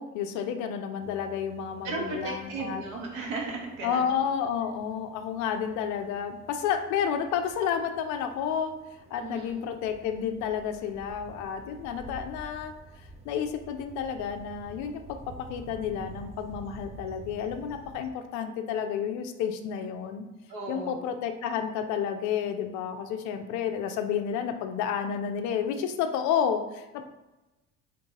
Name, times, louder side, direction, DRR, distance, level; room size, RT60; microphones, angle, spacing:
voice 1, 0.0-2.8 3.8-8.7 9.1-15.0 15.5-20.2 20.7-27.0, left 8 dB, 50° left, 6 dB, 0.5 m, -31 dB
sound 1, 1.0-18.1, right 2 dB, 15° right, 0.5 m, -49 dB
voice 2, 1.8-4.0 9.2-9.6 20.5-21.0, right 3 dB, 60° right, -1 dB, 1.2 m, -35 dB
3.9 x 2.6 x 3.6 m, 1.0 s
figure-of-eight pair, 55°, 40 cm